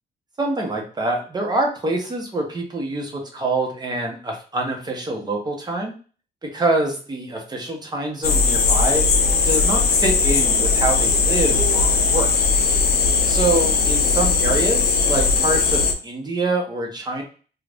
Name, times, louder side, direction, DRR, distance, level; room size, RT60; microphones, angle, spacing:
voice 1, 0.4-5.9 6.4-9.0 9.4-12.3 13.3-17.2, right 2 dB, 20° right, 1 dB, 0.9 m, -25 dB
sound 1, 8.2-15.9, left 4 dB, 60° left, 0.6 m, -19 dB
2.6 x 2.4 x 3.3 m, 0.38 s
cardioid pair, 120°, 18 cm